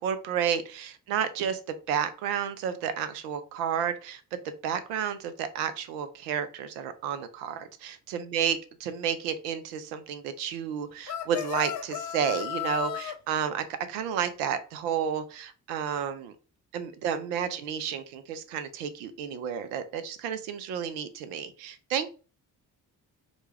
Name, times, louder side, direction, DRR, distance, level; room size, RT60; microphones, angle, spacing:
voice 1, 0.0-4.2 4.6-16.3 16.7-22.1, right 8 dB, 75° right, 12 dB, 0.6 m, -31 dB
sound 1, 11.1-13.2, left 11 dB, 40° left, 0.4 m, -34 dB
2.4 x 2.2 x 3.2 m, 0.35 s
hypercardioid pair, 40°, 48 cm